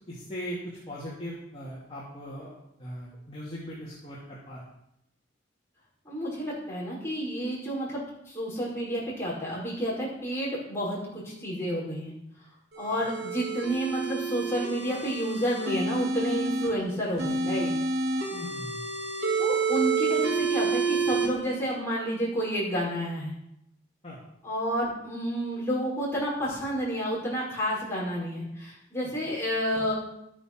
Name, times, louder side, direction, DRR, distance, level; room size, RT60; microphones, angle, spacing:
voice 1, 0.1-2.5 2.8-4.6 18.3-18.8 24.0-24.2 29.0-29.1, equal, 30° left, -7 dB, 2.7 m, -39 dB
voice 2, 6.1-12.1 12.8-17.7 19.4-23.3 24.4-29.9, equal, 15° left, -6 dB, 5.5 m, -30 dB
sound 1, 12.7-16.7 17.2-21.3, right 4 dB, 60° right, 2.9 m, -29 dB
12.5 x 9.2 x 6.2 m, 0.80 s
head